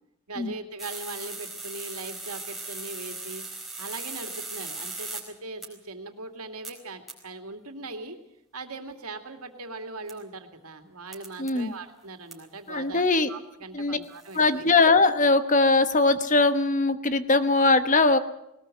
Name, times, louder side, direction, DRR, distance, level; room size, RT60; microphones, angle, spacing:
voice 1, 0.3-3.5 3.8-8.2 8.5-14.7, right 3 dB, 90° right, 6 dB, 2.5 m, -40 dB
sound 1, 0.8-5.2 5.6-5.7 6.6-6.7 7.1-7.2 10.1-10.2 11.1-11.5 12.3-12.4 14.0-14.4, right 3 dB, ahead, 4.4 m, -38 dB
voice 2, 11.4-11.7 12.7-13.3 13.7-14.0 14.3-18.2, left 3 dB, 35° left, 11 dB, 1.1 m, -21 dB
20.0 x 19.0 x 7.8 m, 0.82 s
head